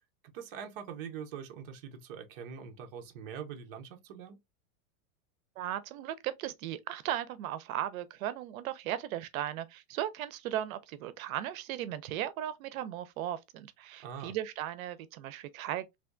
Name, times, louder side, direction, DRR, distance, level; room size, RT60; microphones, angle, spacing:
voice 1, 0.3-4.4 14.0-14.3, right 7 dB, 40° right, 0.6 m, -43 dB
voice 2, 5.6-16.0, right 12 dB, 85° right, 0.6 m, -37 dB
3.3 x 2.6 x 2.5 m
supercardioid pair, 175°, 41 cm